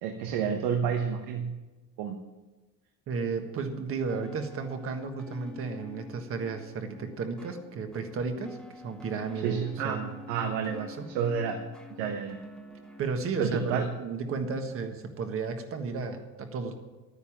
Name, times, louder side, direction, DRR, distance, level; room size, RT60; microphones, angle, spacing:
voice 1, 0.0-1.5 2.0-2.2 9.4-10.0 10.3-10.9 11.1-11.6 12.0-12.4 13.4-13.9, right 7 dB, 85° right, 4 dB, 1.3 m, -29 dB
voice 2, 3.1-8.6 8.8-10.1 10.6-11.1 13.0-16.7, right 4 dB, 40° right, 6 dB, 1.5 m, -33 dB
sound 1, 4.1-13.0, left 3 dB, ahead, 0.9 m, -48 dB
11.5 x 9.8 x 7.3 m, 1.2 s
cardioid pair, 155°, 35 cm